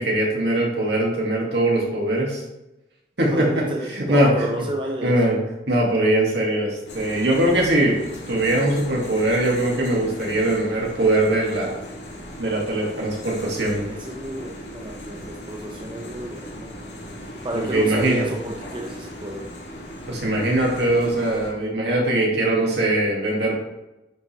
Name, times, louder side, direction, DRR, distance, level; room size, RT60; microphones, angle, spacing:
voice 1, 0.0-2.4 3.2-3.6 3.9-4.3 5.0-5.4 5.7-8.0 8.3-11.8 12.4-13.8 17.5-18.2 20.1-23.5, right 1 dB, 70° right, -3 dB, 2.2 m, -21 dB
voice 2, 3.3-5.2 13.7-16.7 17.4-19.5, right 1 dB, 30° right, 0 dB, 0.8 m, -31 dB
sound 1, 6.9-21.5, equal, 85° left, 2.2 m, -38 dB
9.3 x 5.3 x 3.4 m, 0.97 s
head